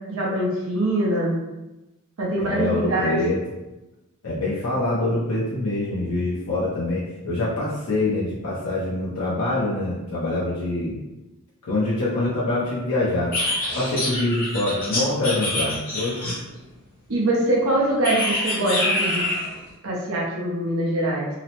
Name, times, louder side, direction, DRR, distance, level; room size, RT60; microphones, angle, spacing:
voice 1, 0.1-1.4 2.2-3.2 17.1-19.3 19.8-21.3, right 1 dB, 65° right, -3 dB, 0.7 m, -23 dB
voice 2, 2.4-3.4 4.2-10.9 11.7-13.3 13.7-16.3, left 2 dB, 90° left, -8 dB, 0.7 m, -25 dB
sound 1, 13.3-16.6 18.0-19.5, left 1 dB, 40° left, 0.9 m, -26 dB
2.9 x 2.0 x 2.8 m, 1.0 s
head